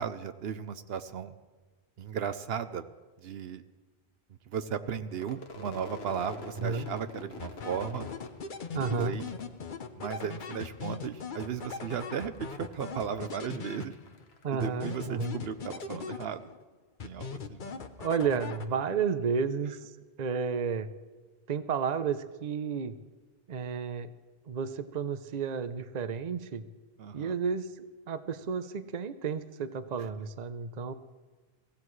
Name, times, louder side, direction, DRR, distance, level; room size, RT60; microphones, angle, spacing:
voice 1, 0.0-1.3 2.0-2.9 3.2-3.6 4.5-8.1 8.7-9.3 10.0-13.9 14.5-16.5 17.0-17.8 27.0-27.3 30.0-30.1, right 7 dB, 75° right, 11 dB, 0.9 m, -36 dB
Crowd / Fireworks, 5.1-10.5 10.8-11.5 11.7-15.3, left 3 dB, 80° left, 1.4 m, -47 dB
sound 1, 7.4-14.2 14.6-16.6 17.0-19.0, left 5 dB, 55° left, 0.9 m, -40 dB
voice 2, 8.7-9.2 14.4-15.4 18.0-19.9 20.2-20.9 21.5-23.0 23.5-24.1 24.5-26.7 27.1-30.9, right 6 dB, 45° right, 11 dB, 0.8 m, -32 dB
23.0 x 16.0 x 3.2 m, 1.4 s
omnidirectional pair, 1.0 m